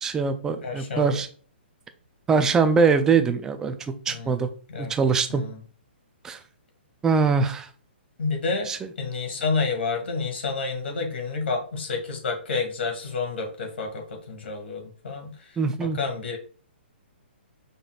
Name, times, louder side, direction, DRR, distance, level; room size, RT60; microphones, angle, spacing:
voice 1, 0.0-1.3 2.3-3.8 4.1-4.5 4.8-5.4 6.2-6.4 7.0-7.7 8.7-8.8 15.6-16.0, right 5 dB, 10° right, 8 dB, 0.4 m, -22 dB
voice 2, 0.6-1.2 4.1-4.9 5.3-5.6 8.2-8.7 9.0-16.4, left 4 dB, 75° left, 3 dB, 1.9 m, -30 dB
5.2 x 3.8 x 2.3 m, 0.41 s
hypercardioid pair, 160°, 6 cm